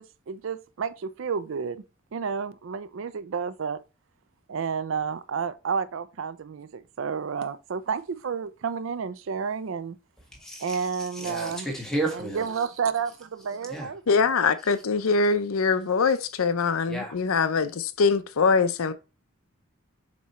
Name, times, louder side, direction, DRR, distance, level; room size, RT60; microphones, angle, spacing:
voice 1, 0.0-1.8 2.1-3.8 4.5-10.0 10.6-11.7 12.1-14.0, right 6 dB, 70° right, 0.4 m, -31 dB
voice 2, 10.3-12.5 13.7-13.9 16.8-17.1, right 2 dB, 5° left, 1.6 m, -32 dB
voice 3, 14.1-18.9, left 4 dB, 85° left, 0.6 m, -23 dB
7.3 x 3.1 x 4.2 m
head